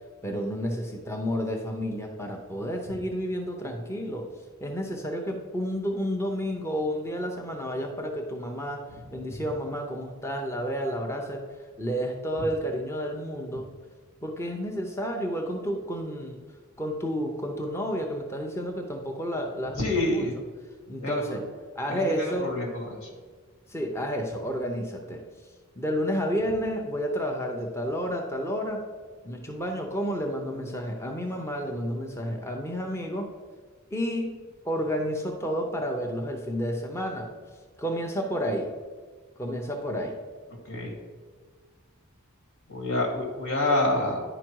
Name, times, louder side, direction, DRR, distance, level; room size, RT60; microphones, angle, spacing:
voice 1, 0.2-4.3 4.6-11.4 11.8-13.7 14.2-16.4 16.8-20.3 20.9-21.4 21.7-22.5 23.7-25.2 25.8-28.8 29.2-33.3 33.9-34.4 34.6-37.3 37.8-38.7 39.4-40.2, equal, 10° left, 2 dB, 0.6 m, -31 dB
voice 2, 19.8-20.4 21.0-21.2 21.9-22.1 22.4-23.0 40.7-40.9 42.7-44.2, left 2 dB, 75° left, 0 dB, 2.1 m, -27 dB
9.8 x 5.0 x 4.6 m, 1.5 s
head